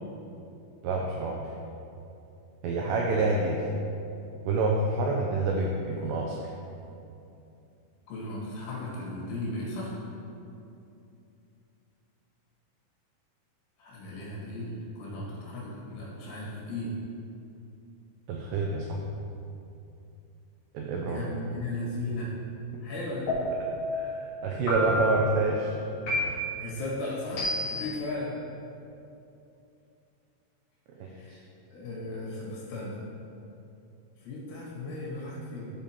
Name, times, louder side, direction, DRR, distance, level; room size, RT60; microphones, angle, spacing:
voice 1, 0.8-1.4 2.6-3.6 4.5-6.5 18.3-19.0 20.7-21.2 23.9-25.7 31.0-31.1, right 3 dB, 90° right, -1 dB, 2.4 m, -27 dB
voice 2, 8.1-10.0 13.8-16.9 21.1-22.3 22.8-23.4 26.5-28.3 31.1-31.4 31.7-33.0 34.2-35.7, left 2 dB, 75° left, -6 dB, 4.3 m, -36 dB
sound 1, 23.3-23.9 24.7-25.3 26.1-26.6 27.4-27.9, equal, 50° left, 2.5 m, -30 dB
13.0 x 5.2 x 2.9 m, 2.7 s
omnidirectional pair, 5.5 m